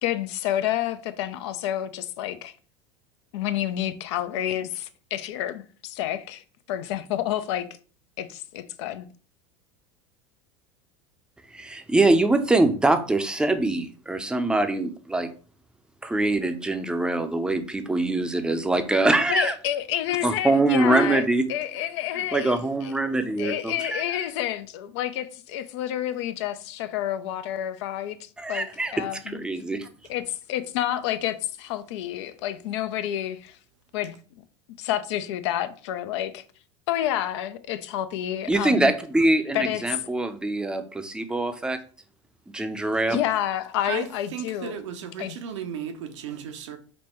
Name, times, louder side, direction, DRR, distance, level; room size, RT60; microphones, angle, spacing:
voice 1, 0.0-2.5 3.3-7.7 8.2-9.1 19.3-22.6 22.8-22.9 23.4-28.7 28.9-29.4 30.1-33.6 33.9-34.2 34.8-36.4 36.9-38.9 39.5-40.0 43.1-44.8 45.2-45.4, left 12 dB, 65° left, 0.4 m, -29 dB
voice 2, 11.5-15.3 16.0-19.5 20.2-21.5 22.3-24.0 28.4-28.9 29.3-29.9 38.5-41.8 42.5-43.2, right 2 dB, 5° right, 0.5 m, -23 dB
voice 3, 44.3-46.8, right 8 dB, 75° right, 0.7 m, -35 dB
5.2 x 2.1 x 3.1 m
hypercardioid pair, 90°, 16 cm